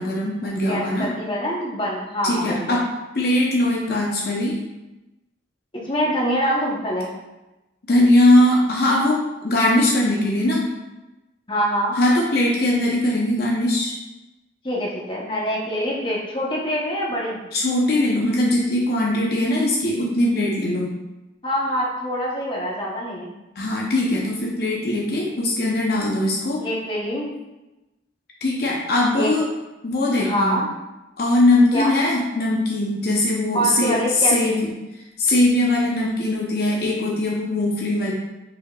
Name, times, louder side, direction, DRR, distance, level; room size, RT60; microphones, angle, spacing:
voice 1, 0.0-1.1 2.2-2.9 3.1-4.6 7.9-10.7 11.9-14.0 17.5-21.0 23.6-26.6 28.4-29.5 29.8-30.6 31.2-34.7 35.2-38.1, left 1 dB, 55° left, -3 dB, 0.7 m, -20 dB
voice 2, 0.6-2.8 5.8-7.1 11.5-12.0 14.6-17.4 21.4-23.3 26.6-27.3 29.1-29.3 30.2-30.7 31.7-31.9 33.5-34.6, equal, 25° left, -4 dB, 0.9 m, -25 dB
5.4 x 4.2 x 2.3 m, 1.0 s
head